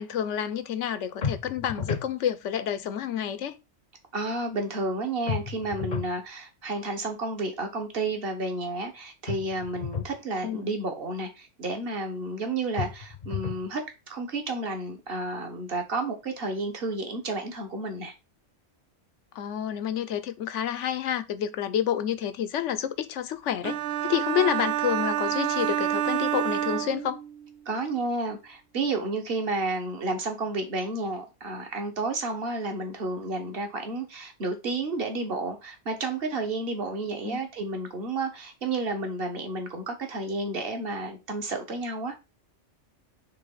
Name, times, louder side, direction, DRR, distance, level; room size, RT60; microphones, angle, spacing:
voice 1, 0.0-3.6 10.4-10.8 19.3-27.2 37.2-37.4, left 9 dB, 75° left, 1.1 m, -29 dB
sound 1, 1.2-2.1 5.3-6.2 9.3-10.2 12.8-13.7, left 6 dB, 40° left, 0.8 m, -32 dB
voice 2, 4.1-13.8 14.1-18.1 27.6-42.1, right 2 dB, 50° right, 1.7 m, -31 dB
sound 2, 23.6-27.5, right 12 dB, 65° right, 0.8 m, -28 dB
6.7 x 3.5 x 5.6 m
omnidirectional pair, 1.3 m